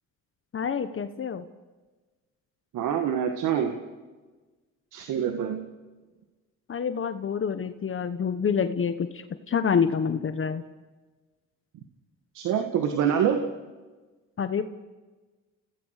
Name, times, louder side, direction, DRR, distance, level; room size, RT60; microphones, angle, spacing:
voice 1, 0.5-1.4 6.7-10.6 14.4-14.6, left 6 dB, 45° left, 10 dB, 1.3 m, -27 dB
voice 2, 2.7-3.8 4.9-5.7 12.3-13.4, right 8 dB, 85° right, 6 dB, 2.0 m, -25 dB
29.5 x 17.0 x 6.7 m, 1.3 s
cardioid pair, 90°, 30 cm